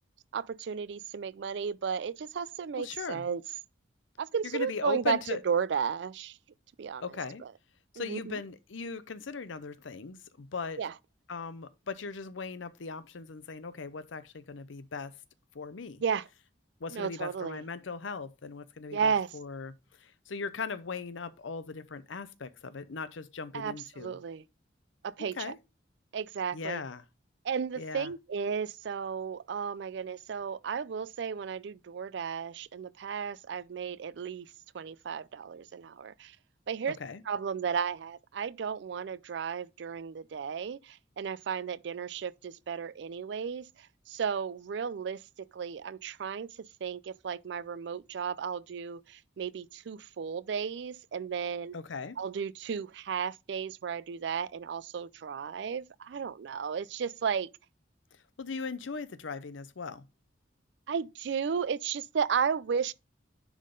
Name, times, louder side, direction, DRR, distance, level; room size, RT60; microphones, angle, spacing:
voice 1, 0.3-3.4 4.2-6.4 6.8-7.0 7.4-7.5 8.0-8.4 10.8-10.9 16.0-16.3 16.9-17.6 18.9-19.3 23.5-24.4 25.0-25.5 26.1-26.8 27.4-34.5 34.7-36.4 36.7-37.0 37.3-45.2 45.5-51.7 52.2-57.5 60.9-62.9, right 6 dB, 65° right, 0.4 m, -34 dB
voice 2, 2.8-3.2 4.5-5.4 7.0-7.4 7.9-10.8 11.3-15.1 15.5-16.0 16.8-19.7 20.0-24.2 25.4-25.6 26.5-27.0 27.8-28.1 37.0-37.2 51.7-52.2 58.4-60.0, left 5 dB, 85° left, 0.7 m, -38 dB
10.0 x 3.7 x 3.8 m
head